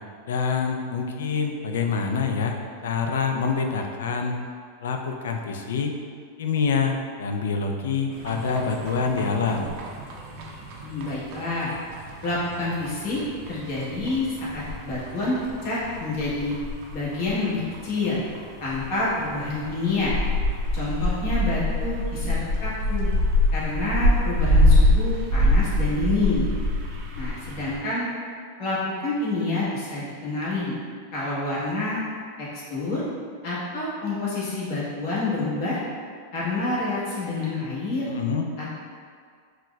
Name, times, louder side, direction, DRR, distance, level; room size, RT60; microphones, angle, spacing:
voice 1, 0.3-2.5 2.8-4.4 4.8-5.9 6.4-9.7 38.0-38.4, left 5 dB, 80° left, 4 dB, 0.3 m, -26 dB
sound 1, 8.1-27.8, left 1 dB, 55° right, 0.5 m, -26 dB
voice 2, 10.8-11.7 12.2-13.2 13.5-15.4 15.6-16.6 16.9-18.2 18.6-20.2 20.7-23.1 23.5-26.5 27.1-28.1 28.6-30.8 31.1-32.0 32.4-33.0 33.4-35.8 36.3-38.1 38.6-38.7, left 2 dB, 60° left, -8 dB, 1.1 m, -28 dB
4.1 x 2.0 x 2.2 m, 2.1 s
supercardioid pair, 130°, 0 cm